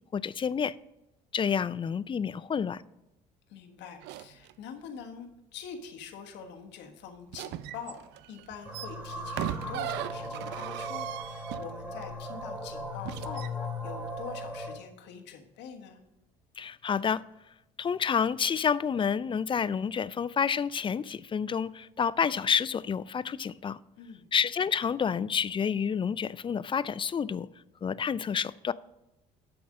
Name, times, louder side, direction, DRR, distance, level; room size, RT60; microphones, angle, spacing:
voice 1, 0.1-0.8 1.3-2.8 16.6-17.2 17.8-23.8 24.3-27.5 27.8-28.7, left 7 dB, 25° left, 0.4 m, -29 dB
voice 2, 3.5-8.0 8.3-16.0 24.0-24.3, left 7 dB, 70° left, 1.4 m, -45 dB
sound 1, 4.0-4.5 7.3-12.0 13.0-13.5, right 13 dB, 65° right, 0.5 m, -38 dB
sound 2, 8.6-14.8, left 1 dB, 10° right, 2.7 m, -38 dB
8.3 x 6.1 x 5.1 m
hypercardioid pair, 60°, 19 cm